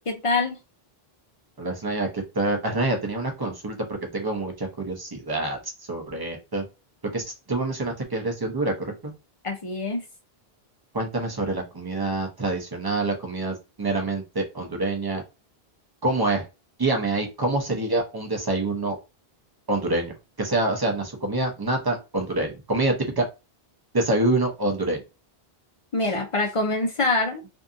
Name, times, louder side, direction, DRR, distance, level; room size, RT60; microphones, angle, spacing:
voice 1, 0.1-0.6 9.4-10.0 25.9-27.4, left 2 dB, 45° left, 2 dB, 0.4 m, -24 dB
voice 2, 1.6-5.6 5.9-6.6 7.1-9.1 10.9-15.2 16.0-16.4 16.8-19.0 19.7-20.1 20.4-23.3 23.9-25.0, right 2 dB, 30° right, 3 dB, 0.5 m, -26 dB
2.6 x 2.5 x 2.4 m, 0.27 s
omnidirectional pair, 1.0 m